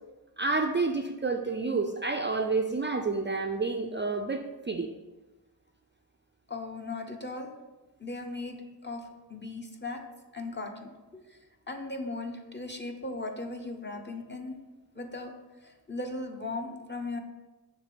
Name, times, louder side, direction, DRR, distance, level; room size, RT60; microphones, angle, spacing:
voice 1, 0.4-4.9, right 3 dB, 30° right, 3 dB, 0.4 m, -29 dB
voice 2, 6.5-7.5 8.0-10.0 10.3-11.4 11.7-14.6 15.0-15.3 15.6-17.2, left 2 dB, 25° left, 3 dB, 0.9 m, -38 dB
6.5 x 3.3 x 5.1 m, 1.2 s
cardioid pair, 40°, 41 cm